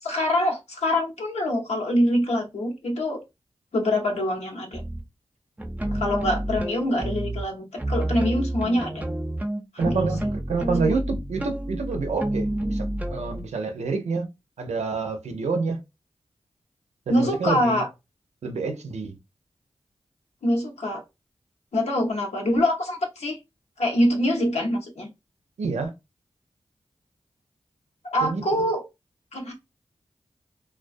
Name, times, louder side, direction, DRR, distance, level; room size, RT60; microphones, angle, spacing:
voice 1, 0.0-3.2 3.7-4.8 5.9-9.0 9.8-10.1 17.1-17.9 20.4-21.0 21.7-23.4 23.8-25.1 28.1-28.8 29.3-29.5, left 1 dB, 80° left, 0.8 m, -24 dB
sound 1, 4.7-5.0 5.6-7.4 7.8-13.4, right 1 dB, 15° right, 0.5 m, -29 dB
voice 2, 9.8-10.2 10.5-14.3 14.6-15.8 17.1-17.8 18.4-19.2 25.6-25.9 28.2-28.6, right 4 dB, 85° right, 0.5 m, -28 dB
2.3 x 2.2 x 2.5 m
cardioid pair, 45°, 11 cm